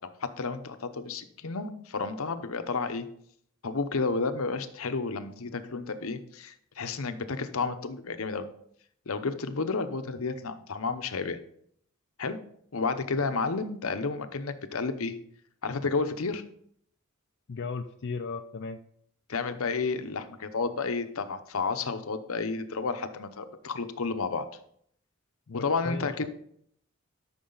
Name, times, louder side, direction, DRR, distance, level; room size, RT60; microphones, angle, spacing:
voice 1, 0.2-3.1 3.6-8.5 9.1-11.4 12.2-12.4 12.7-15.2 15.6-16.4 19.3-24.5 25.5-26.3, left 4 dB, 70° left, 10 dB, 0.8 m, -31 dB
voice 2, 17.5-18.8 25.5-26.3, left 4 dB, 50° left, 5 dB, 0.5 m, -36 dB
12.5 x 6.2 x 3.9 m, 0.67 s
head